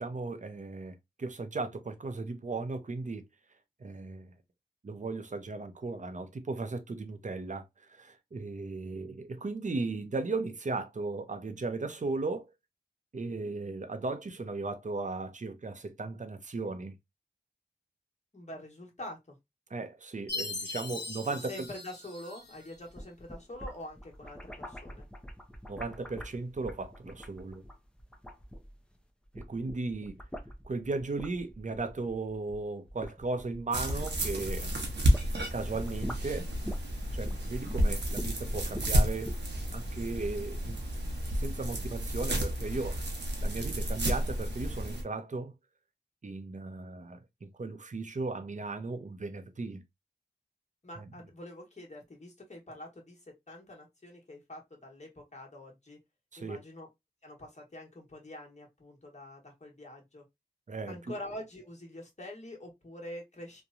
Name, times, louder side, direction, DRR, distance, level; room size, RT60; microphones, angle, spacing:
voice 1, 0.0-3.2 3.8-4.3 4.8-12.5 13.1-16.9 19.7-21.7 25.7-27.6 29.3-30.2 30.6-34.7 35.5-36.5 37.1-39.4 39.7-40.8 41.3-43.1 43.4-45.5 46.2-49.8 51.0-51.1 56.3-56.6 60.7-61.0, right 3 dB, 45° right, 0.6 m, -36 dB
voice 2, 18.3-19.4 21.5-25.1 50.8-53.2 53.5-56.0 56.4-56.9 57.2-60.2 60.9-63.6, left 1 dB, 40° left, 1.2 m, -45 dB
Chime, 20.3-22.7, left 3 dB, 70° left, 1.0 m, -39 dB
sound 1, 22.7-29.0 29.2-35.3 35.6-40.4, equal, 5° left, 0.6 m, -44 dB
sound 2, 33.7-45.0, equal, 75° right, 0.8 m, -31 dB
2.9 x 2.2 x 2.4 m
cardioid pair, 40°, 18 cm